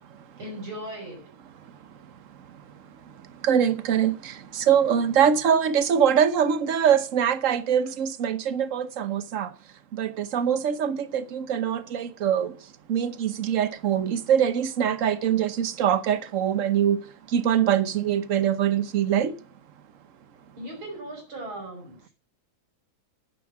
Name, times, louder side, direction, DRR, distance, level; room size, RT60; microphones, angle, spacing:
voice 1, 0.4-1.2 20.6-22.1, right 1 dB, 90° right, 6.9 m, -38 dB
voice 2, 3.4-4.1 4.5-9.5 9.9-12.5 12.9-17.0 17.3-19.3, right 8 dB, 50° right, 1.1 m, -23 dB
10.5 x 9.6 x 6.1 m
omnidirectional pair, 2.1 m